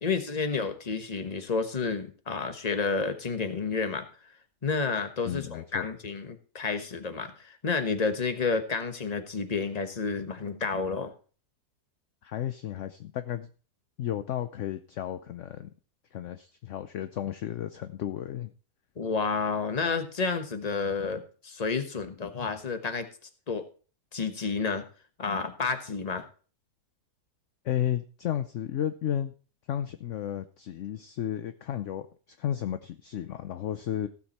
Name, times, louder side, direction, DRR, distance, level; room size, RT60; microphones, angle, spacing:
voice 1, 0.0-4.1 4.6-11.1 19.0-23.1 23.5-23.6 24.1-24.8 25.2-26.2, left 4 dB, 25° left, 8 dB, 1.2 m, -30 dB
voice 2, 5.3-5.9 12.2-13.5 14.0-15.7 16.1-18.5 27.6-29.3 29.7-34.1, left 10 dB, 60° left, 11 dB, 0.9 m, -33 dB
15.5 x 7.2 x 4.3 m, 0.38 s
omnidirectional pair, 1.7 m